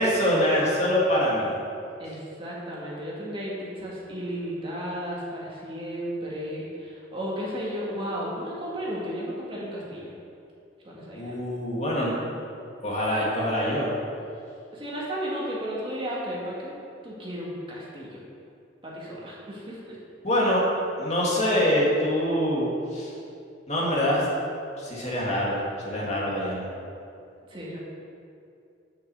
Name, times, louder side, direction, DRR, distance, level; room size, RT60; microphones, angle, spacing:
voice 1, 0.0-1.5 11.1-12.1 12.8-13.9 20.2-20.6 21.0-23.1 23.7-24.3 24.8-25.6 25.8-26.6, equal, 35° left, -5 dB, 1.9 m, -24 dB
voice 2, 2.0-10.1 10.8-11.3 14.7-16.7 17.0-18.2 18.8-20.0 27.5-27.8, equal, 30° right, -5 dB, 1.8 m, -34 dB
6.3 x 5.9 x 6.8 m, 2.6 s
head